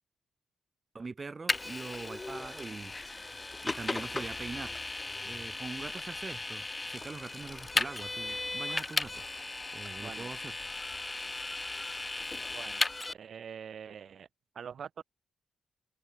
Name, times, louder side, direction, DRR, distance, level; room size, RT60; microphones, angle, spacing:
voice 1, 0.9-2.9 3.6-4.8 5.2-9.2 9.7-10.5, right 4 dB, 35° right, 1.7 m, -43 dB
Vehicle, 1.5-13.1, left 2 dB, 20° left, 0.3 m, -36 dB
sound 1, 2.9-12.3, left 9 dB, 80° left, 4.9 m, -62 dB
voice 2, 10.0-10.3 12.5-12.8 13.1-14.3 14.5-15.0, right 7 dB, 65° right, 0.9 m, -44 dB
cardioid pair, 105°, 0 cm